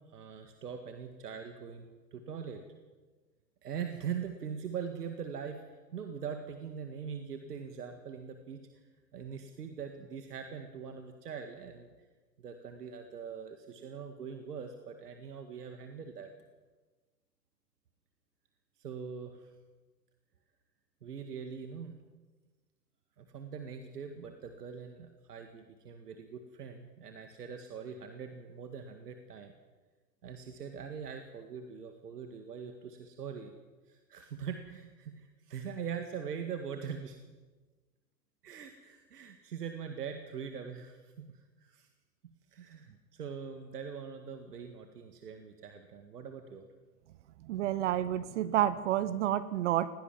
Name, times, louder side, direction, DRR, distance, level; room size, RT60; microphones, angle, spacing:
voice 1, 0.1-2.6 3.6-8.8 9.1-11.9 12.4-16.3 18.8-19.5 21.0-22.0 23.2-29.5 30.2-33.5 33.9-37.2 38.4-41.9 42.5-46.7, right 7 dB, 70° right, 6 dB, 2.1 m, -42 dB
voice 2, 47.4-49.9, right 12 dB, 45° right, 15 dB, 1.0 m, -29 dB
20.0 x 17.5 x 7.5 m, 1.3 s
figure-of-eight pair, 110°, 49 cm